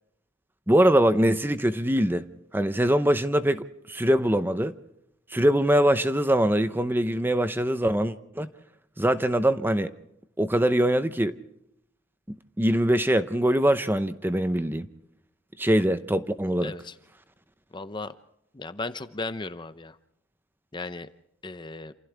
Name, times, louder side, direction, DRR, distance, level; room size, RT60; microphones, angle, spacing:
voice 1, 0.7-2.2 2.5-4.7 5.3-8.5 9.0-9.9 10.4-11.4 12.6-14.9 15.6-16.7, right 1 dB, 10° right, 0.8 m, -23 dB
voice 2, 16.6-16.9 17.7-18.1 18.5-20.0 20.7-21.1 21.4-21.9, left 3 dB, 20° left, 0.7 m, -36 dB
28.0 x 28.0 x 3.5 m
head